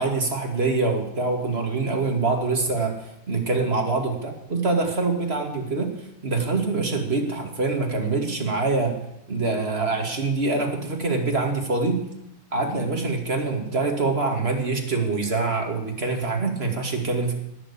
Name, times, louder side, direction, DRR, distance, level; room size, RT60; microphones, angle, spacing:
voice 1, 0.0-3.0 3.3-5.9 6.2-9.0 9.3-12.0 12.5-17.3, right 3 dB, 35° right, 2 dB, 2.6 m, -25 dB
19.0 x 7.6 x 8.4 m, 0.84 s
omnidirectional pair, 1.9 m